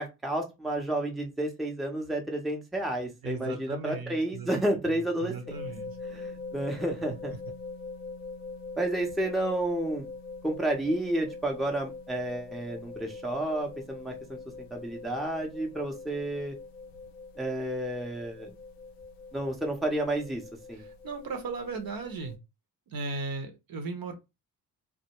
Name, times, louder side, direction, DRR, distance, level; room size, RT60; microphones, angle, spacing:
voice 1, 0.0-5.3 6.1-7.3 8.8-10.1 10.4-14.4 14.7-16.5 17.4-18.6 19.3-20.4 20.7-20.8, right 1 dB, ahead, 0.7 m, -31 dB
voice 2, 3.2-6.0 20.7-22.4 22.9-24.1, right 3 dB, 50° right, 0.8 m, -37 dB
sound 1, 5.5-22.4, left 4 dB, 90° left, 0.6 m, -43 dB
2.2 x 2.1 x 2.9 m
hypercardioid pair, 50°, 47 cm